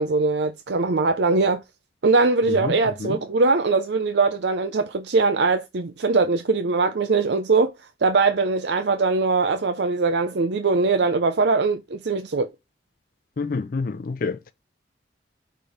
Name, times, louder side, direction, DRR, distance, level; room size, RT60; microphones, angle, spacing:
voice 1, 0.0-1.6 2.0-7.7 8.0-12.5, right 3 dB, 65° right, 0.5 m, -21 dB
voice 2, 2.5-3.2 13.4-14.5, left 4 dB, 50° left, 0.4 m, -28 dB
4.9 x 4.5 x 4.9 m
head